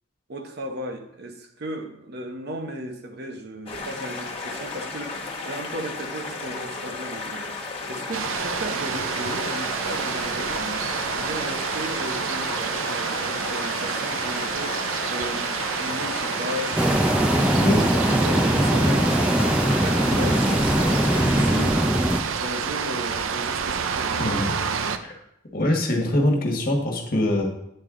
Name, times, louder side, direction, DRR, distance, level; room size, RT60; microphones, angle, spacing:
voice 1, 0.3-7.6 7.9-17.1 17.5-24.3, equal, 55° right, 4 dB, 0.8 m, -35 dB
sound 1, 3.7-21.7, left 3 dB, 30° left, 1.1 m, -34 dB
sound 2, 8.1-25.0, right 6 dB, 85° right, 0.5 m, -28 dB
sound 3, 16.8-22.2, equal, 5° right, 0.4 m, -21 dB
voice 2, 24.2-24.5 25.0-25.1 25.5-27.4, left 1 dB, 45° left, 1 dB, 1.5 m, -23 dB
8.8 x 5.3 x 3.7 m, 0.77 s
head